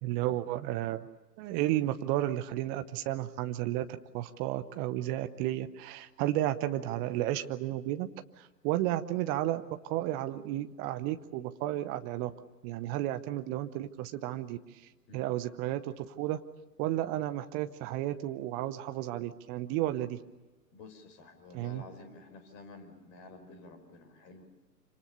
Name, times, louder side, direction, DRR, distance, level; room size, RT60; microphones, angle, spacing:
voice 1, 0.0-1.1 1.4-3.9 4.1-8.1 8.4-12.3 12.6-14.6 15.1-16.4 16.8-20.2 21.5-21.8, right 14 dB, 20° right, 10 dB, 0.8 m, -32 dB
voice 2, 20.7-24.5, left 3 dB, 30° left, 8 dB, 5.1 m, -51 dB
27.0 x 26.0 x 6.9 m, 1.1 s
figure-of-eight pair, 115°, 49 cm